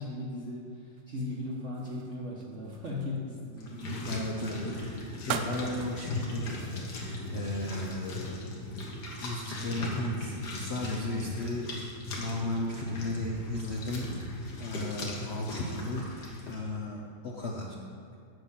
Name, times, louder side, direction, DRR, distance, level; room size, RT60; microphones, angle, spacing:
voice 1, 0.0-4.3, left 2 dB, 50° right, -4 dB, 1.0 m, -37 dB
sound 1, 1.0-3.4 4.3-4.6 5.2-6.3 6.6-6.9 7.4-8.2 8.6-9.9, right 7 dB, 70° right, 1.0 m, -41 dB
sound 2, 3.6-16.6, left 1 dB, 60° left, 1.8 m, -38 dB
voice 2, 4.1-8.4 9.2-11.8 12.2-17.8, left 2 dB, 85° left, -1 dB, 0.5 m, -35 dB
7.9 x 5.9 x 7.2 m, 2.2 s
omnidirectional pair, 2.2 m